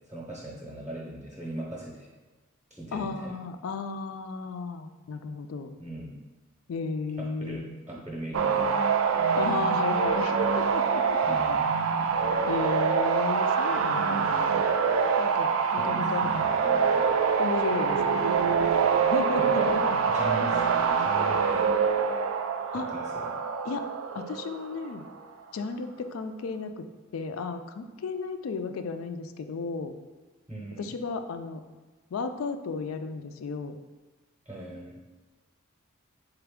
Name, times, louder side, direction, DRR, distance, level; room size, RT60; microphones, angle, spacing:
voice 1, 0.1-2.1 2.7-3.3 5.8-6.2 7.2-8.8 11.2-11.6 15.8-17.1 19.4-19.7 20.1-21.6 22.7-23.3 30.5-30.9 34.5-35.0, right 1 dB, 15° right, -4 dB, 0.7 m, -39 dB
voice 2, 2.9-5.8 6.7-7.8 9.3-11.6 12.5-14.3 15.2-16.3 17.4-18.3 19.0-19.8 22.7-22.9 23.6-23.9 24.1-25.0 25.5-26.9 27.1-30.0 30.8-31.6 32.1-33.8, left 4 dB, 75° left, 8 dB, 0.4 m, -34 dB
sound 1, 8.3-25.1, right 5 dB, 75° right, 0.4 m, -25 dB
4.0 x 3.4 x 3.5 m, 1.3 s
head